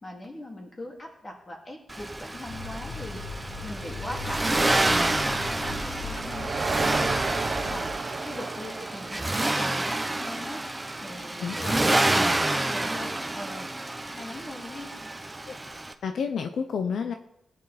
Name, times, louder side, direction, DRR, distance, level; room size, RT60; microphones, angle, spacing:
voice 1, 0.0-10.6 11.0-14.9, left 1 dB, 25° left, 1 dB, 2.7 m, -41 dB
Accelerating revving vroom, 1.9-15.9, right 2 dB, 15° right, 0.9 m, -28 dB
sound 1, 2.5-7.9, left 2 dB, 50° left, 6.5 m, -38 dB
sound 2, 6.1-10.2, right 4 dB, 45° right, 1.2 m, -33 dB
voice 2, 11.4-12.0 15.5-15.6 16.0-17.1, left 6 dB, 75° left, 7 dB, 0.8 m, -30 dB
18.0 x 9.4 x 4.3 m, 0.80 s
wide cardioid pair, 135°, 0 cm